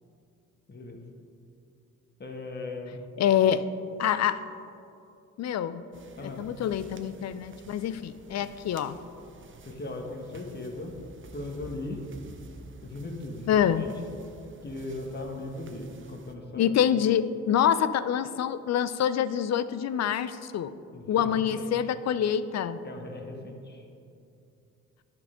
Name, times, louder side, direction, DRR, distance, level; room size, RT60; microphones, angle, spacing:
voice 1, 0.7-1.0 2.2-3.0 6.2-6.4 9.6-10.9 11.3-12.0 12.8-13.9 14.6-16.7 20.9-21.7 22.8-23.8, left 2 dB, 25° left, 2 dB, 1.3 m, -38 dB
voice 2, 3.2-3.6 4.0-4.4 5.4-5.8 6.2-9.0 13.5-13.8 16.6-20.7 21.1-22.8, left 9 dB, 45° left, 14 dB, 0.4 m, -26 dB
sound 1, 5.9-16.3, right 3 dB, 30° right, 0.8 m, -50 dB
10.5 x 4.4 x 5.0 m, 2.6 s
hypercardioid pair, 45°, 37 cm